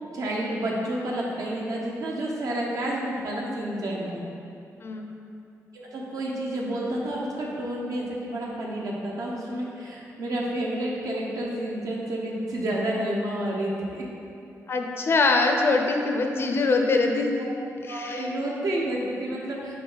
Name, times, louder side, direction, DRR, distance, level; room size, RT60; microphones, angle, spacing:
voice 1, 0.1-4.2 5.7-14.0 17.4-17.5 17.9-19.7, right 1 dB, 65° right, -3 dB, 1.0 m, -30 dB
voice 2, 14.7-17.3 17.8-18.3, left 3 dB, 40° left, 3 dB, 0.5 m, -23 dB
7.6 x 3.5 x 4.0 m, 2.6 s
wide cardioid pair, 145°, 6 cm